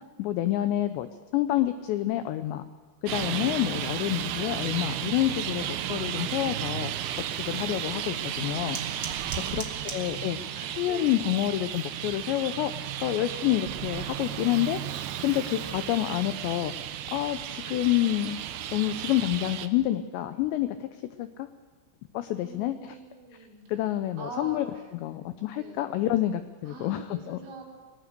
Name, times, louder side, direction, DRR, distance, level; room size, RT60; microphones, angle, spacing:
voice 1, 0.2-2.6 3.0-6.9 7.3-8.8 9.5-9.6 9.9-12.7 13.0-14.8 15.2-16.7 17.1-18.4 18.7-20.9 21.2-21.5 22.1-23.0 23.7-24.7 25.0-27.4, left 14 dB, 80° left, 10 dB, 2.5 m, -28 dB
Traffic noise roadway noise, 3.1-19.7, right 11 dB, 80° right, 2.3 m, -34 dB
sound 1, 7.7-18.8, right 4 dB, 50° right, 1.6 m, -49 dB
voice 2, 9.2-11.3 22.4-23.6 24.2-24.8 25.6-25.9 26.6-27.6, right 3 dB, 65° right, -2 dB, 6.0 m, -44 dB
23.5 x 19.5 x 6.7 m, 1.4 s
omnidirectional pair, 5.9 m